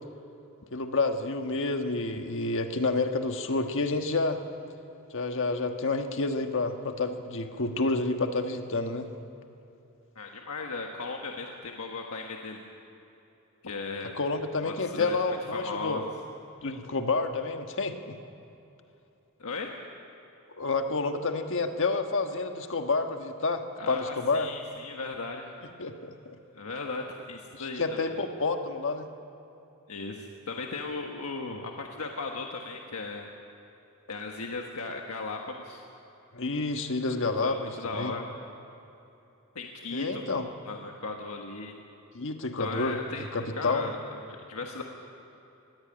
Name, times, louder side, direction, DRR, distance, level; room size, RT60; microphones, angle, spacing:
voice 1, 0.7-4.4 5.1-9.1 14.1-16.0 16.6-18.2 20.6-24.5 25.8-26.4 27.5-29.1 36.3-38.1 39.9-40.4 42.1-43.9, left 3 dB, 60° left, 6 dB, 1.4 m, -29 dB
voice 2, 10.1-12.6 13.6-14.2 14.6-16.1 19.4-19.7 23.8-25.5 26.5-28.2 29.9-33.3 34.1-35.8 37.1-37.2 37.4-38.3 39.5-40.2 40.6-41.7 42.6-43.2 43.6-44.8, left 3 dB, 85° left, 2 dB, 1.4 m, -37 dB
20.5 x 15.5 x 8.8 m, 2.9 s
head